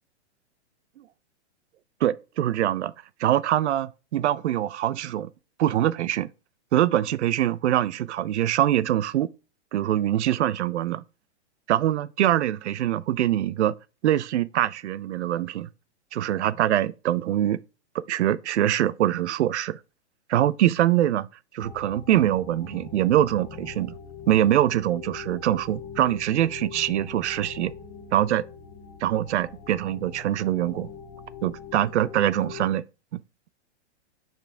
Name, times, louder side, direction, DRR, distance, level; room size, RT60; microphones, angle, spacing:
voice 1, 2.0-2.9 3.2-5.3 5.6-6.3 6.7-9.3 9.7-11.0 11.7-13.7 14.0-15.7 16.1-17.6 18.1-19.8 20.3-21.3 21.5-23.9 24.3-27.7 28.1-28.4 29.0-30.9 31.4-32.8 33.1-33.2, right 12 dB, 80° right, 0.6 m, -23 dB
sound 1, 21.6-32.7, left 6 dB, 20° left, 1.2 m, -42 dB
5.8 x 4.6 x 4.4 m
hypercardioid pair, 170°, 34 cm